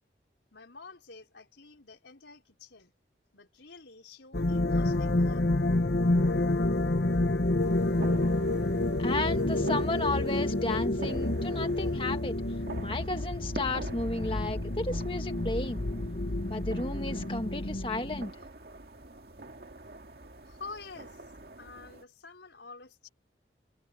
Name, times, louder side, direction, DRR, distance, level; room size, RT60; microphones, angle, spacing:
voice 1, 0.5-2.9 3.3-5.5 20.4-21.2 21.6-23.1, left 4 dB, 85° left, 5.0 m, -48 dB
sound 1, 4.3-18.2, left 2 dB, 65° left, 1.1 m, -29 dB
sound 2, 7.6-22.0, right 2 dB, 60° right, 2.1 m, -46 dB
voice 2, 9.0-12.4 12.8-15.9 16.5-18.3, left 2 dB, 30° left, 1.8 m, -33 dB
head